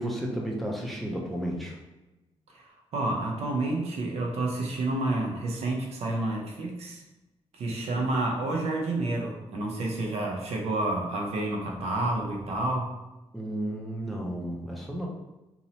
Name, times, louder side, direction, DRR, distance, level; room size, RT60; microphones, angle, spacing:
voice 1, 0.0-1.8 7.9-8.1 13.3-15.1, right 1 dB, ahead, -2 dB, 0.4 m, -33 dB
voice 2, 2.5-7.0 7.5-12.9, right 2 dB, 75° right, 0 dB, 0.6 m, -29 dB
2.6 x 2.0 x 2.7 m, 1.0 s
wide cardioid pair, 135°, 11 cm